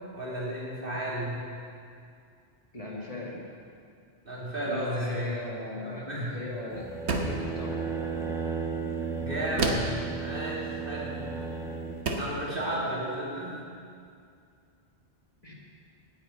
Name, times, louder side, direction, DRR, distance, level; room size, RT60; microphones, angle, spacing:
voice 1, 0.1-1.4 4.2-5.2 5.8-6.4 9.2-9.9 10.2-11.3 12.2-13.6, right 1 dB, 55° right, -6 dB, 3.1 m, -33 dB
voice 2, 2.7-3.4 4.7-7.9 12.5-12.9 15.4-15.5, left 1 dB, 35° left, -3 dB, 1.7 m, -39 dB
sound 1, 6.7-12.0, right 5 dB, 5° right, 1.3 m, -34 dB
sound 2, 7.1-7.5 9.6-10.0 11.4-11.5 12.1-12.4, right 3 dB, 85° right, 1.4 m, -29 dB
9.9 x 9.0 x 8.4 m, 2.4 s
omnidirectional pair, 1.1 m